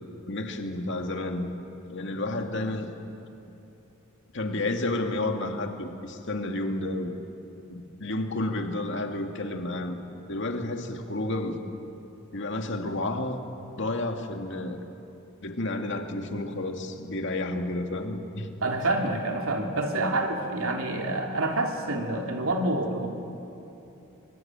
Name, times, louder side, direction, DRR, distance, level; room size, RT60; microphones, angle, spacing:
voice 1, 0.3-1.5 1.9-2.9 4.3-7.1 7.7-10.0 10.3-11.6 12.3-13.4 13.8-14.9 15.4-18.5, left 2 dB, 60° left, 4 dB, 2.3 m, -31 dB
voice 2, 18.6-23.1, right 2 dB, 75° right, 2 dB, 2.8 m, -27 dB
24.0 x 23.5 x 9.1 m, 2.9 s
head